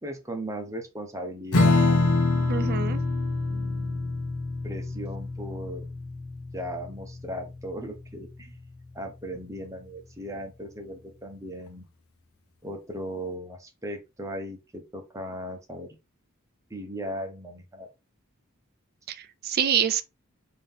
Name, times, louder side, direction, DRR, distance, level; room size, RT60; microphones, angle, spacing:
voice 1, 0.0-2.7 3.5-4.2 4.6-5.9 6.5-8.6 8.9-11.8 12.6-15.9 16.7-17.9, right 1 dB, 15° right, 0.8 m, -37 dB
Strum, 1.5-8.4, left 3 dB, 80° left, 0.8 m, -26 dB
voice 2, 2.5-3.0 19.1-20.0, right 8 dB, 45° right, 0.4 m, -26 dB
3.7 x 2.7 x 3.5 m
head